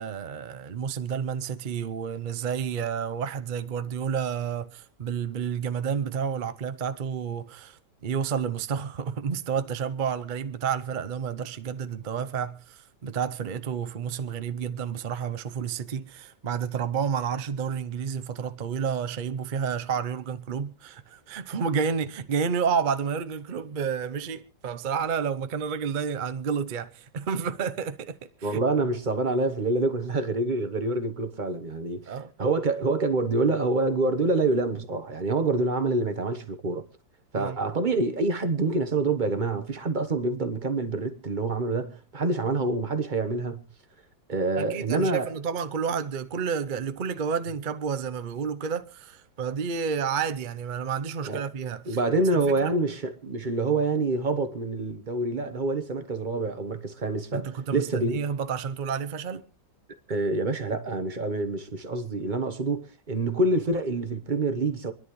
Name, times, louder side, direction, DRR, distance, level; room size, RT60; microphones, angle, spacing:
voice 1, 0.0-28.6 32.1-32.3 37.4-37.6 44.6-52.0 52.3-52.7 57.3-59.5, right 6 dB, 50° right, 0.6 m, -30 dB
voice 2, 28.4-36.8 37.3-43.6 44.3-45.3 51.2-51.4 51.8-57.4 57.7-58.2 60.1-64.9, right 3 dB, 30° right, 1.1 m, -26 dB
27.5 x 11.0 x 3.1 m
omnidirectional pair, 1.8 m